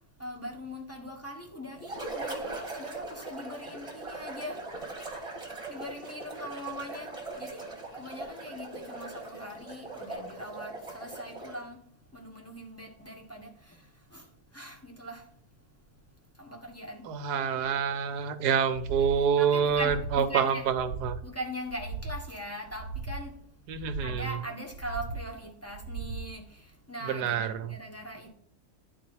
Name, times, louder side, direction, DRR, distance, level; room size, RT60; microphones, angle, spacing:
voice 1, 0.2-4.6 5.1-5.3 5.7-14.3 14.5-15.3 16.4-17.1 17.5-17.6 19.0-20.6 21.2-23.4 24.0-28.3, equal, 10° left, 1.2 m, -41 dB
sound 1, 1.8-11.7, right 2 dB, 20° right, 1.6 m, -40 dB
voice 2, 17.0-21.2 23.7-24.3 27.1-27.7, right 7 dB, 85° right, 1.3 m, -27 dB
sound 2, 18.7-19.2 19.6-20.2 20.6-21.2 21.6-22.2 22.7-23.3 23.7-24.3 24.7-25.3 25.7-26.3, right 4 dB, 65° right, 1.2 m, -38 dB
10.5 x 4.3 x 4.6 m
omnidirectional pair, 1.7 m